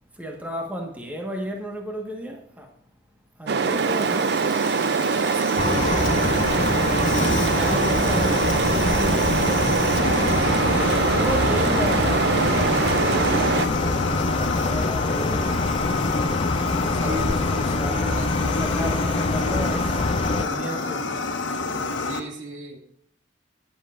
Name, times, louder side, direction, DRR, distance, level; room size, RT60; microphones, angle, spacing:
voice 1, 0.2-2.7 3.4-4.3 5.3-5.4 5.8-6.3 7.3-9.5 10.6-13.0 13.4-15.6 17.0-21.1, right 1 dB, 10° right, 1.4 m, -33 dB
sound 1, 3.5-13.7, right 5 dB, 55° right, 0.4 m, -23 dB
Fire, 3.6-22.2, left 3 dB, 80° left, 1.4 m, -30 dB
voice 2, 5.1-5.6 16.9-18.5 22.0-22.8, right 1 dB, 80° right, 2.4 m, -36 dB
sound 2, 5.6-20.4, left 3 dB, 30° left, 0.4 m, -25 dB
20.0 x 7.3 x 2.5 m
head